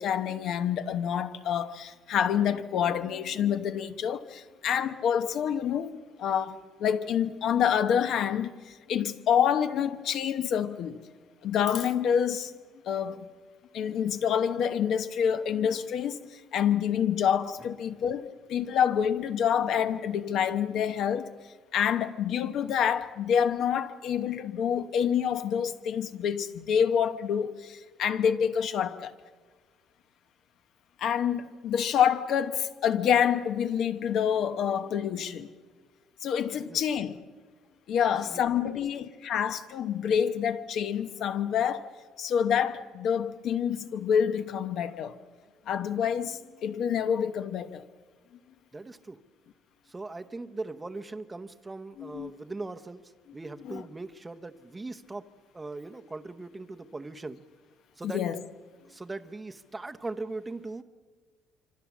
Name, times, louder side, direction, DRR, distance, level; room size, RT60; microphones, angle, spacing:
voice 1, 0.0-5.9 6.2-11.0 11.4-12.5 12.9-13.2 13.7-21.3 21.7-29.1 31.0-35.5 36.2-37.2 37.9-41.9 42.2-45.2 45.7-47.8 52.0-52.3 53.7-53.8 58.1-58.4, left 8 dB, 55° left, 0.9 m, -27 dB
voice 2, 38.2-38.8 48.7-49.2 49.9-57.4 58.0-58.2 58.8-60.8, right 3 dB, 10° right, 0.8 m, -40 dB
25.5 x 25.5 x 7.2 m
cardioid pair, 165°, 0 cm